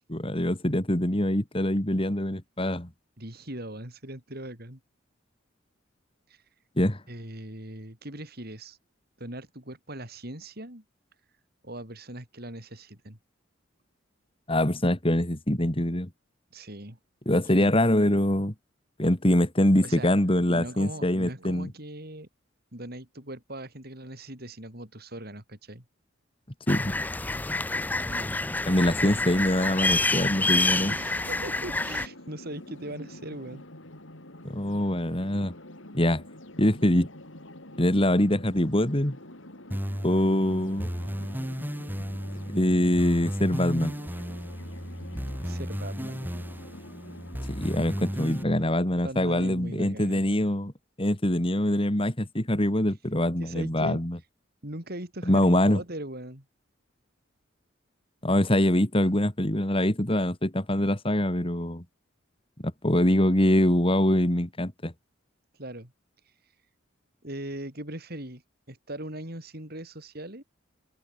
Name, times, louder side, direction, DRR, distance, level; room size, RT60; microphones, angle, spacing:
voice 1, 0.1-2.9 6.8-7.0 14.5-16.1 17.3-18.5 19.0-21.7 26.7-26.9 28.7-30.9 34.4-35.5 35.9-36.2 36.6-37.1 37.8-39.2 40.0-40.9 42.5-43.9 47.5-50.7 51.0-54.2 55.3-55.8 58.2-61.8 62.6-64.9, left 1 dB, 30° left, 2.5 m, -24 dB
voice 2, 3.2-4.8 6.3-6.4 7.1-8.8 9.2-10.8 11.6-13.2 16.5-17.0 17.5-17.7 19.8-20.1 20.4-22.3 22.7-25.8 28.1-28.4 30.9-33.6 45.4-46.2 48.9-50.5 53.4-54.0 54.6-56.4 65.6-65.9 67.2-68.4 68.7-70.4, right 1 dB, 50° right, 6.4 m, -40 dB
sound 1, 26.7-32.1, left 2 dB, 10° left, 0.3 m, -28 dB
sound 2, 30.0-48.8, left 1 dB, 75° left, 5.5 m, -46 dB
sound 3, 39.7-48.4, equal, 10° right, 2.8 m, -34 dB
open air
head